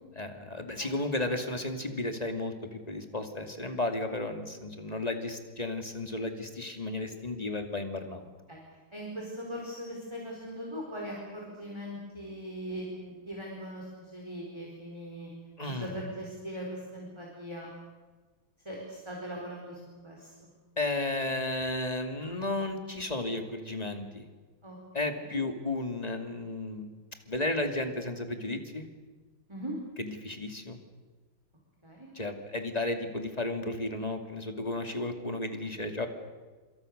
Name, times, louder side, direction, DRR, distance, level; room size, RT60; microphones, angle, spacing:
voice 1, 0.2-8.2 15.6-15.9 20.8-24.3 24.9-26.9 27.3-28.9 30.0-30.8 32.1-36.1, left 2 dB, 20° left, 5 dB, 2.5 m, -33 dB
voice 2, 8.9-15.3 15.6-17.7 18.6-20.5 24.6-24.8 25.0-25.4 29.5-29.7 31.8-32.1, equal, 15° right, -2 dB, 4.6 m, -40 dB
27.0 x 26.5 x 6.7 m, 1.3 s
omnidirectional pair, 2.2 m